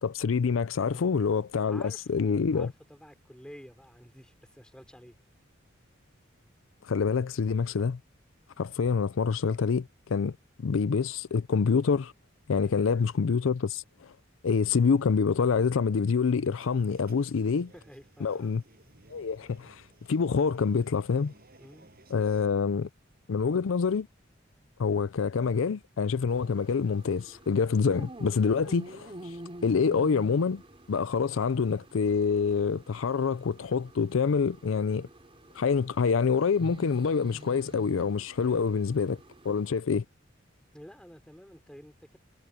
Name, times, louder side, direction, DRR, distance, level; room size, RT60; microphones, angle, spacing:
voice 1, 0.0-2.7 6.9-8.0 8.6-12.1 12.5-14.1 14.4-17.7 18.2-18.6 19.1-19.8 20.1-21.3 22.1-22.9 23.3-24.1 24.8-29.3 29.6-30.6 30.9-35.1 35.5-39.2 39.4-40.0, left 5 dB, 80° left, 0.5 m, -26 dB
voice 2, 0.8-1.1 1.6-5.2 12.6-12.8 17.7-18.6 21.6-21.9 38.4-38.8 40.7-42.2, equal, 5° left, 5.5 m, -50 dB
sound 1, 16.4-22.5, right 2 dB, 50° right, 7.6 m, -58 dB
sound 2, 26.3-39.8, right 1 dB, 30° right, 4.0 m, -48 dB
head